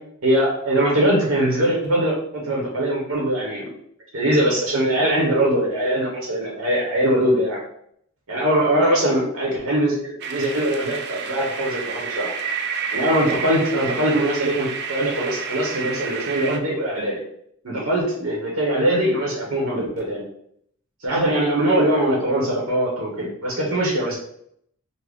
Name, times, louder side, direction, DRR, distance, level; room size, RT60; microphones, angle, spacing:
voice 1, 0.2-2.1 2.4-3.7 4.1-7.6 8.3-12.3 12.9-17.2 17.6-20.2 21.0-24.2, right 1 dB, 65° right, -3 dB, 0.8 m, -21 dB
sound 1, 10.2-16.6, right 6 dB, 45° right, 0.3 m, -30 dB
3.7 x 2.0 x 3.4 m, 0.69 s
head